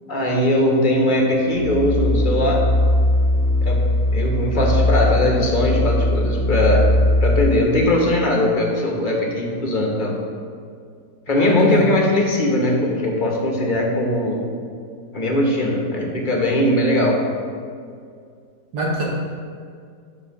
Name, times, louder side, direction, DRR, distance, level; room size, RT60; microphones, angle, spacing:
voice 1, 0.1-2.6 3.6-3.8 4.1-6.8 7.2-10.1 11.3-14.4 15.1-17.2, left 1 dB, 35° left, -1 dB, 0.9 m, -20 dB
sound 1, 1.5-7.4, left 1 dB, 15° right, 1.1 m, -19 dB
voice 2, 11.3-12.0 18.7-19.0, right 1 dB, 75° right, -3 dB, 1.8 m, -24 dB
5.5 x 4.7 x 5.8 m, 2.2 s
omnidirectional pair, 1.7 m